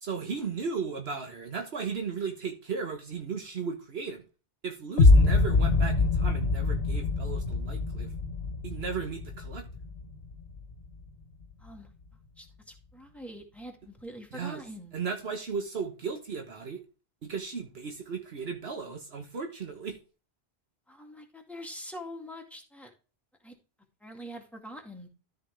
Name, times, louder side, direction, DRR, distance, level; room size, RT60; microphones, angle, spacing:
voice 1, 0.0-4.3 4.6-8.1 8.6-9.7 14.3-14.6 14.9-16.8 17.2-20.0, right 5 dB, 70° right, 1.4 m, -36 dB
sound 1, 5.0-11.0, left 3 dB, 70° left, 1.2 m, -24 dB
voice 2, 11.6-11.9 12.4-15.0 20.9-22.9 23.4-23.6 24.0-25.1, equal, ahead, 2.1 m, -44 dB
13.5 x 4.8 x 3.4 m
omnidirectional pair, 1.1 m